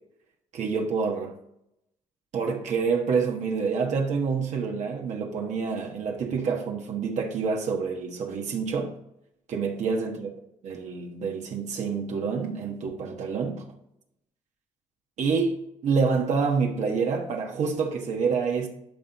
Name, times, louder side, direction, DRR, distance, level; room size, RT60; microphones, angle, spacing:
voice 1, 0.5-1.3 2.3-8.9 9.5-10.3 10.6-13.6 15.2-18.7, right 5 dB, 65° right, 1.3 m, -27 dB
11.5 x 4.4 x 4.0 m
cardioid pair, 100°, 13 cm